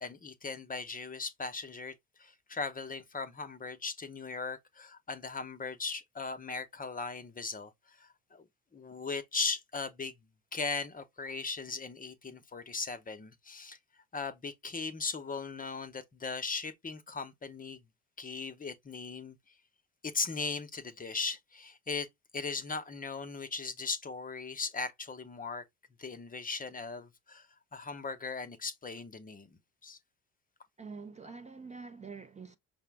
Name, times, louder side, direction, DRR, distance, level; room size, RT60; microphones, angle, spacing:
voice 1, 0.0-8.4 8.7-10.1 10.5-13.8 14.1-17.8 18.2-19.4 20.0-22.1 22.3-25.6 26.0-27.5 27.7-30.0, left 4 dB, 20° left, 0.7 m, -38 dB
voice 2, 30.8-32.6, right 4 dB, 20° right, 0.6 m, -46 dB
5.7 x 2.0 x 3.5 m
hypercardioid pair, 60°, 39 cm